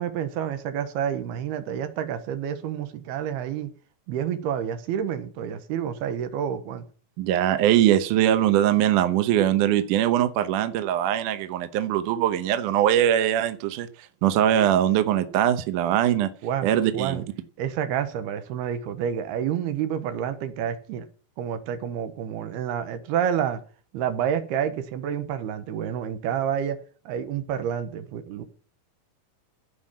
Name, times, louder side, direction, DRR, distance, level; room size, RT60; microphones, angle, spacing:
voice 1, 0.0-3.7 4.1-6.8 16.4-17.3 17.6-21.1 21.4-23.6 23.9-26.8 27.1-28.4, right 9 dB, 90° right, 3.3 m, -29 dB
voice 2, 7.2-13.9 14.2-16.3 16.6-17.2, right 11 dB, 70° right, 2.2 m, -21 dB
15.5 x 5.5 x 7.2 m
omnidirectional pair, 4.5 m